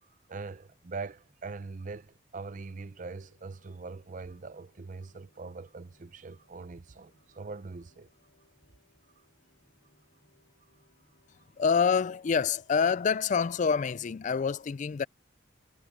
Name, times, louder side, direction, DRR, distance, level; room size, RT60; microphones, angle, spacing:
voice 1, 0.3-8.1, right 4 dB, 40° right, 0.5 m, -42 dB
sound 1, 0.6-14.4, equal, 15° left, 7.1 m, -72 dB
sound 2, 2.4-14.5, left 2 dB, 80° left, 4.5 m, -70 dB
voice 2, 11.6-15.1, left 6 dB, 40° left, 0.3 m, -26 dB
head